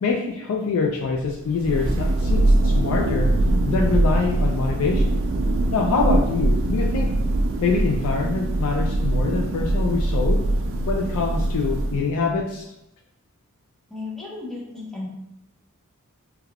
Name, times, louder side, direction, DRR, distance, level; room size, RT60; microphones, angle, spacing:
voice 1, 0.0-3.3 3.7-5.2 5.7-7.1 7.6-10.4 10.9-12.7, left 4 dB, 65° left, 0 dB, 0.3 m, -25 dB
Thunder, 1.3-12.3, right 1 dB, 65° right, 0.3 m, -22 dB
voice 2, 13.9-15.1, left 3 dB, ahead, -5 dB, 0.7 m, -34 dB
3.2 x 2.3 x 2.3 m, 0.83 s
head